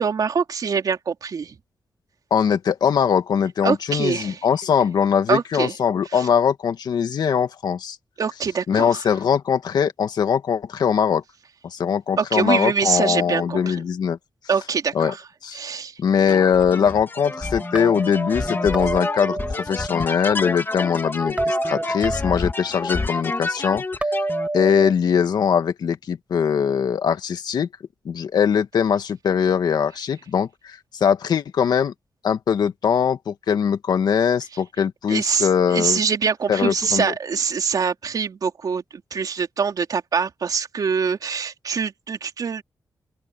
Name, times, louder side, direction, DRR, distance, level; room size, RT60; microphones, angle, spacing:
voice 1, 0.0-1.6 3.6-4.5 5.3-5.7 6.1-6.3 8.2-9.0 12.2-13.8 14.5-15.2 15.5-16.0 35.1-38.8 39.1-42.6, right 6 dB, 65° right, 3.8 m, -24 dB
voice 2, 2.3-8.0 8.7-11.2 11.7-14.2 14.9-15.1 15.4-15.6 16.0-23.8 24.5-27.7 28.1-31.9 32.2-36.0 36.5-37.1, left 7 dB, 85° left, 1.8 m, -21 dB
sound 1, 16.3-24.5, left 3 dB, 30° left, 2.1 m, -29 dB
sound 2, 17.2-20.4 21.4-22.6 24.0-24.9, right 2 dB, 20° right, 1.9 m, -28 dB
open air
cardioid pair, 90°, 7 cm